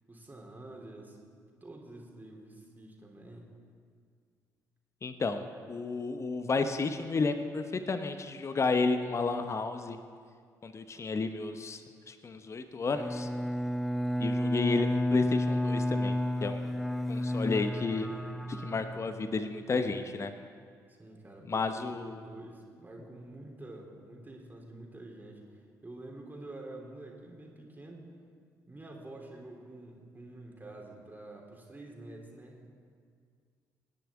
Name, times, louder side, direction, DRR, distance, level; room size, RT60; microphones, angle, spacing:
voice 1, 0.1-1.2 1.6-3.5 20.9-28.1 28.7-32.7, right 2 dB, 20° right, 0 dB, 3.0 m, -48 dB
voice 2, 5.0-10.0 10.6-11.8 12.1-13.3 14.2-16.7 17.1-18.1 18.5-20.3 21.5-22.2, left 4 dB, 30° left, 9 dB, 0.9 m, -32 dB
Bowed string instrument, 13.0-19.6, left 1 dB, ahead, 0.8 m, -31 dB
25.0 x 10.5 x 3.6 m, 2.1 s
figure-of-eight pair, 45°, 9 cm